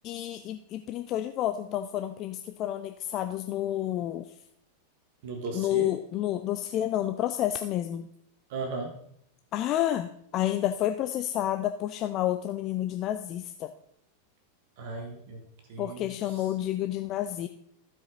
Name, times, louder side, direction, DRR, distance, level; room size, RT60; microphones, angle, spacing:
voice 1, 0.0-4.3 5.5-8.1 9.5-13.7 15.8-17.5, left 12 dB, 35° left, 8 dB, 0.5 m, -30 dB
voice 2, 5.2-5.9 8.5-9.0 14.8-15.4 15.7-16.4, right 3 dB, 50° right, 4 dB, 1.5 m, -36 dB
15.0 x 5.0 x 3.9 m, 0.70 s
figure-of-eight pair, 90°, 0 cm